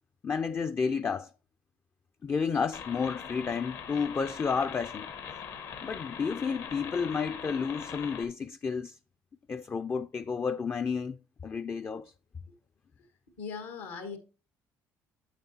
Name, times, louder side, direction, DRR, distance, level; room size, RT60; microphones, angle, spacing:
voice 1, 0.2-1.3 2.2-5.1 5.8-9.0 9.5-11.2 11.4-12.1, left 5 dB, 30° left, 0.4 m, -31 dB
sound 1, 2.7-8.3, left 7 dB, 70° left, 1.2 m, -42 dB
voice 2, 13.4-14.2, left 5 dB, 85° left, 1.6 m, -39 dB
8.8 x 7.3 x 2.8 m
supercardioid pair, 70°, 7 cm